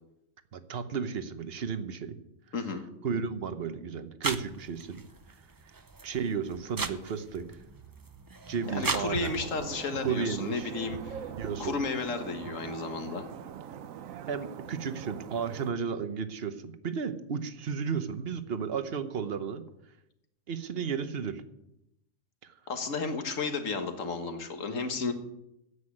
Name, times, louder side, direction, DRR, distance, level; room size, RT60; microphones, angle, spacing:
voice 1, 0.5-2.2 3.0-5.0 6.0-7.6 8.5-9.3 10.0-10.7 11.4-11.8 14.3-19.6 20.5-21.4 22.4-22.6, right 6 dB, 50° right, 11 dB, 1.1 m, -33 dB
voice 2, 2.5-2.9 8.7-11.2 11.6-13.3 22.7-25.1, left 4 dB, 70° left, 7 dB, 1.8 m, -33 dB
sound 1, 4.2-9.6, right 3 dB, 30° right, 0.4 m, -37 dB
sound 2, 8.6-15.7, right 8 dB, 80° right, 1.1 m, -42 dB
9.8 x 8.3 x 9.7 m, 0.85 s
omnidirectional pair, 1.4 m